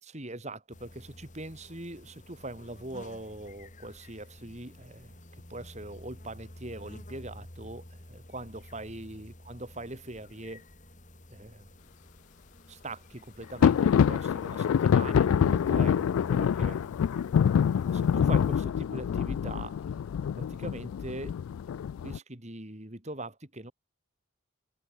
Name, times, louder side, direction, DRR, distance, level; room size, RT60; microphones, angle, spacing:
voice 1, 0.0-5.2 5.5-10.7 11.3-11.7 12.7-16.8 17.7-20.1 20.4-21.4 22.0-23.7, right 2 dB, 35° right, 2.7 m, -42 dB
sound 1, 0.7-18.6, left 1 dB, 35° left, 4.4 m, -49 dB
sound 2, 13.6-22.2, left 8 dB, 85° left, 0.3 m, -26 dB
head